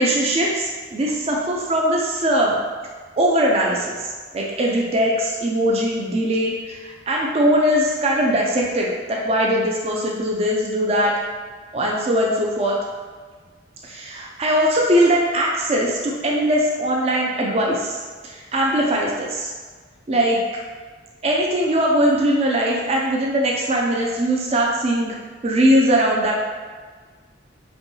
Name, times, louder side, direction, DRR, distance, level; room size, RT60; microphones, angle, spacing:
voice 1, 0.0-2.6 3.2-11.1 11.7-12.7 13.8-18.0 18.2-19.5 20.1-20.4 21.2-25.1 25.4-26.4, equal, 30° right, -2 dB, 0.4 m, -20 dB
5.1 x 2.2 x 3.1 m, 1.5 s
head